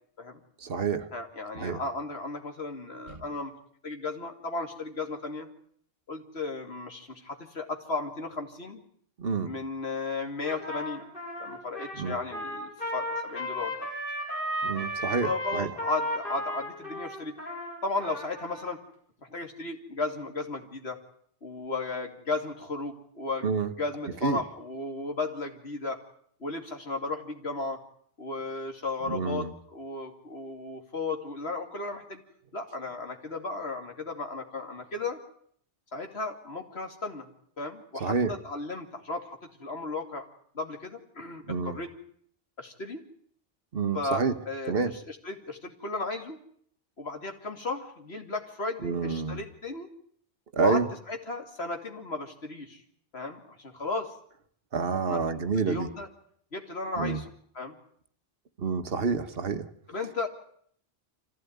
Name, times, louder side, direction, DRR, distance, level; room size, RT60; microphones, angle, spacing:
voice 1, 0.6-1.1 1.6-1.8 3.1-3.2 9.2-9.5 12.0-12.2 14.6-15.7 23.4-23.7 24.2-24.4 29.1-29.5 38.0-38.3 41.5-41.8 43.7-44.4 44.7-44.9 48.8-49.4 50.5-50.9 54.7-55.9 57.0-57.2 58.6-59.7, right 5 dB, 65° right, 11 dB, 1.4 m, -28 dB
voice 2, 1.1-3.5 3.8-5.5 6.1-8.8 9.4-11.0 11.4-13.9 15.2-17.4 17.8-18.8 19.2-21.0 21.4-23.5 23.8-26.0 26.4-27.8 28.2-32.2 32.5-35.2 35.9-37.3 37.6-39.3 39.6-40.3 40.5-41.9 42.6-43.0 43.9-44.7 45.1-46.4 47.0-49.9 50.6-50.8 51.1-52.8 53.1-54.1 55.1-55.2 55.6-56.1 56.5-57.8 59.9-60.3, left 3 dB, 85° left, 5 dB, 2.9 m, -35 dB
Trumpet, 10.4-18.7, equal, 55° left, 7.3 m, -35 dB
25.0 x 15.5 x 9.4 m, 0.64 s
omnidirectional pair, 1.1 m